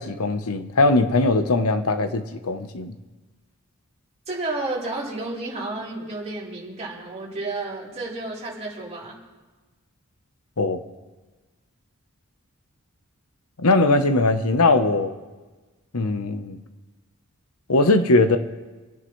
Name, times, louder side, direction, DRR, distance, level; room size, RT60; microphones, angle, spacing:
voice 1, 0.0-2.9 10.6-10.8 13.6-15.1 15.9-16.6 17.7-18.4, left 2 dB, 85° left, 1.0 m, -20 dB
voice 2, 4.3-9.2, right 2 dB, 30° right, 4.1 m, -31 dB
28.0 x 9.6 x 3.2 m
head